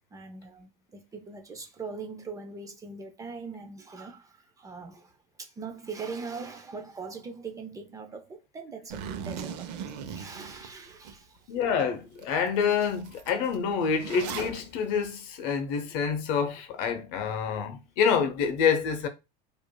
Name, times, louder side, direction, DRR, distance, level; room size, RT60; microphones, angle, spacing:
voice 1, 0.1-11.4, right 4 dB, 15° right, 0.4 m, -41 dB
Zipper (clothing), 8.9-11.1 11.6-11.7 12.2-12.3 12.5-14.6, right 7 dB, 75° right, 0.7 m, -39 dB
voice 2, 11.5-19.1, left 6 dB, 55° left, 0.8 m, -27 dB
4.9 x 2.5 x 2.2 m
supercardioid pair, 150°, 21 cm